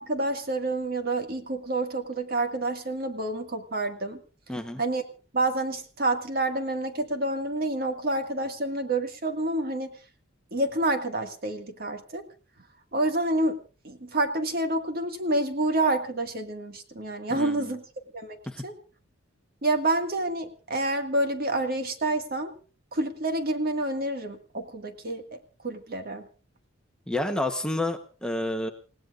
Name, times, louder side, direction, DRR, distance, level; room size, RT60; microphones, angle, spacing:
voice 1, 0.0-4.2 4.8-5.0 5.3-9.9 10.5-12.2 12.9-13.6 13.8-17.8 18.1-18.4 18.6-18.7 19.6-22.5 22.9-25.2 25.6-26.2, right 2 dB, 45° right, 5 dB, 1.9 m, -28 dB
voice 2, 4.5-4.8 17.3-17.7 18.5-18.6 27.1-28.7, left 1 dB, 5° left, 5 dB, 1.0 m, -30 dB
29.0 x 17.0 x 2.5 m, 0.37 s
head